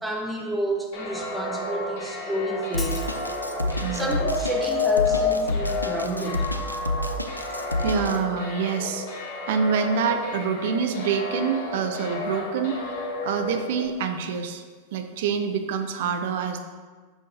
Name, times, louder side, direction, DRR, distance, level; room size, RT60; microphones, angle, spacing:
voice 1, 0.0-3.0 3.9-6.5, right 1 dB, 5° right, 0 dB, 1.1 m, -30 dB
sound 1, 0.9-13.9, left 4 dB, 55° left, 1.3 m, -30 dB
Drum kit, 2.7-8.2, left 1 dB, 85° left, 0.4 m, -29 dB
Shatter, 2.8-3.8, left 3 dB, 10° left, 0.8 m, -40 dB
voice 2, 3.8-4.1 7.7-9.1 9.5-12.8 13.2-14.6 14.9-16.6, right 6 dB, 55° right, 7 dB, 0.6 m, -26 dB
8.8 x 6.4 x 2.8 m, 1.4 s
figure-of-eight pair, 90°, 0 cm